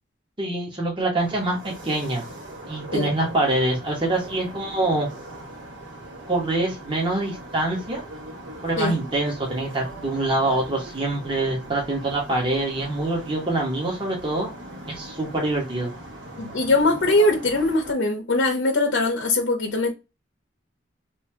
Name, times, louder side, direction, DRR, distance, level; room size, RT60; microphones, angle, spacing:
voice 1, 0.4-2.2 2.7-5.1 6.3-8.0 8.6-14.5 14.9-15.9, right 2 dB, 25° right, 1.1 m, -25 dB
sound 1, 1.2-17.9, right 1 dB, 80° right, 1.6 m, -40 dB
voice 2, 16.4-19.9, left 2 dB, 80° left, 0.7 m, -21 dB
3.2 x 2.7 x 3.2 m
head